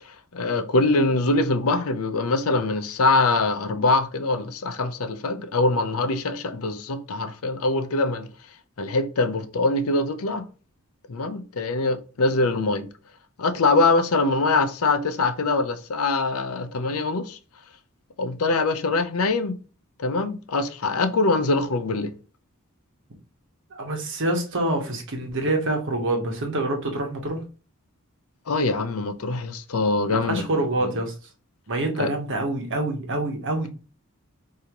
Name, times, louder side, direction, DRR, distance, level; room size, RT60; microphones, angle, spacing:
voice 1, 0.3-8.3 8.8-10.4 11.1-12.9 13.4-17.4 18.2-19.6 20.0-22.1 28.5-30.4 30.8-30.9 32.0-32.1, left 3 dB, 75° left, 0.6 m, -23 dB
voice 2, 23.7-27.4 30.1-31.1 31.7-33.7, right 2 dB, 60° right, 1.1 m, -26 dB
4.9 x 2.8 x 2.9 m
head